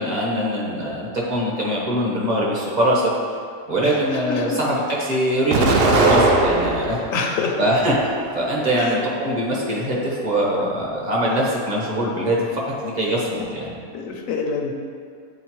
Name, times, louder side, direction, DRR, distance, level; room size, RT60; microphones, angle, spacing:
voice 1, 0.0-3.1 3.6-7.0 7.6-13.7, equal, 35° right, -5 dB, 1.1 m, -22 dB
voice 2, 3.8-4.6 6.0-6.2 7.1-7.6 8.7-9.0 11.2-11.4 13.4-13.5 13.9-14.7, left 4 dB, 80° left, 2 dB, 1.0 m, -27 dB
Explosion, 5.5-7.2 7.7-8.6, right 2 dB, 60° right, 0.7 m, -19 dB
8.1 x 3.9 x 3.1 m, 2.2 s
omnidirectional pair, 1.4 m